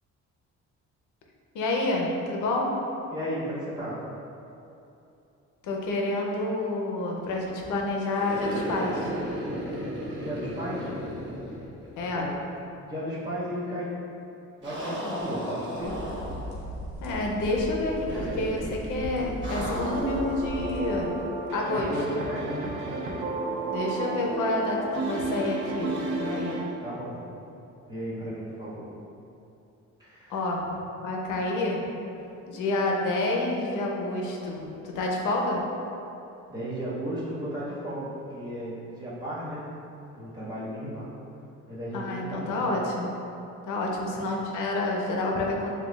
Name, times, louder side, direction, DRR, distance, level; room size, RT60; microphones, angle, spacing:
voice 1, 1.5-2.7 5.6-9.1 12.0-12.3 17.0-21.2 21.5-21.9 22.1-22.2 23.7-26.6 30.3-30.7 31.0-31.8 32.5-35.6 41.9-43.1 43.7-45.7, left 2 dB, 85° left, -1 dB, 0.7 m, -28 dB
voice 2, 3.1-4.0 9.7-9.9 10.2-10.9 12.1-12.4 12.8-13.9 14.6-16.0 21.7-23.2 26.8-27.2 27.9-28.8 30.0-30.3 36.5-39.6 40.1-41.1 41.7-42.8, equal, 15° right, -8 dB, 1.5 m, -35 dB
sound 1, 8.1-12.2 12.5-12.6 14.6-16.6 18.1-18.7 19.4-20.3, equal, 40° right, 1.2 m, -34 dB
sound 2, 15.8-21.2, equal, 45° left, 1.0 m, -38 dB
sound 3, 19.8-26.6, right 3 dB, 75° right, 0.6 m, -32 dB
6.8 x 2.3 x 2.3 m, 2.9 s
cardioid pair, 90°, 30 cm